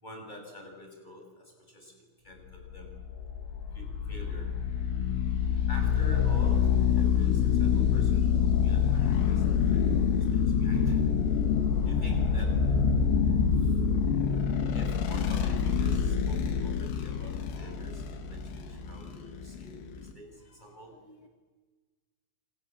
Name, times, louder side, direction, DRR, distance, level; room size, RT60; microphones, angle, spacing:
voice 1, 0.0-1.9 2.2-2.9 3.7-4.5 5.7-10.0 10.3-11.0 11.8-12.5 12.7-13.0 14.7-20.3 20.6-20.9, equal, 10° left, 2 dB, 6.7 m, -47 dB
sound 1, 2.7-20.1, left 7 dB, 85° left, 4.9 m, -26 dB
voice 2, 18.9-19.2 21.0-21.3, left 2 dB, 55° left, 4 dB, 1.7 m, -57 dB
28.5 x 27.0 x 7.5 m, 1.3 s
omnidirectional pair, 5.9 m